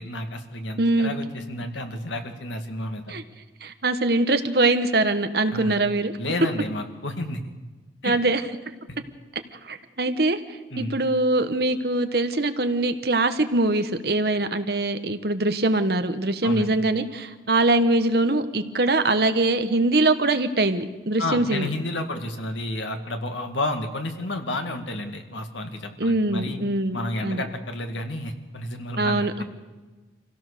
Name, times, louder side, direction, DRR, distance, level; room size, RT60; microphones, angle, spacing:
voice 1, 0.0-3.1 5.5-5.7 6.2-7.5 8.0-8.2 8.9-9.0 10.7-11.0 16.4-16.8 21.2-26.6 26.9-29.4, left 1 dB, 90° left, 5 dB, 2.2 m, -31 dB
voice 2, 0.8-1.1 3.1-3.2 3.6-6.1 8.0-8.4 9.6-21.7 26.0-27.5 29.0-29.4, right 2 dB, 55° right, 9 dB, 1.3 m, -23 dB
26.5 x 16.5 x 6.8 m, 1.3 s
head